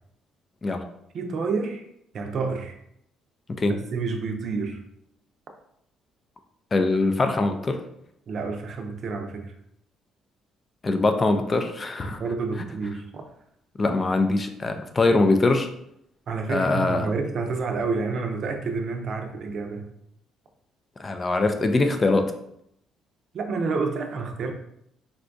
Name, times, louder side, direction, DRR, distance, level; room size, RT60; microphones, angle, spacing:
voice 1, 1.1-1.8 2.1-2.7 3.7-4.8 8.3-9.5 12.2-13.2 16.3-19.9 23.3-24.5, right 4 dB, 55° right, 4 dB, 0.5 m, -29 dB
voice 2, 6.7-7.8 10.8-12.2 13.8-15.7 16.5-17.1 21.0-22.3, left 2 dB, 30° left, 6 dB, 0.3 m, -22 dB
3.7 x 2.2 x 2.5 m, 0.75 s
cardioid pair, 90°, 0 cm